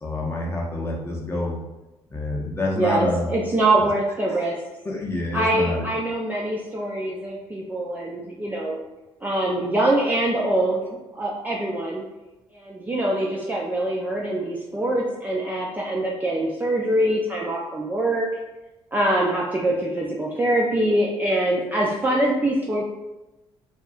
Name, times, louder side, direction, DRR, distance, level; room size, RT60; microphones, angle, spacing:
voice 1, 0.0-1.6 2.1-3.3 3.8-3.9 4.3-4.4 4.8-5.9, left 2 dB, 20° left, -2 dB, 0.6 m, -27 dB
voice 2, 2.7-4.6 5.3-8.8 9.2-10.8 11.1-12.0 12.5-18.4 18.9-22.8, right 1 dB, 10° right, -4 dB, 0.3 m, -24 dB
2.7 x 2.3 x 2.3 m, 1.0 s
figure-of-eight pair, 45°, 14 cm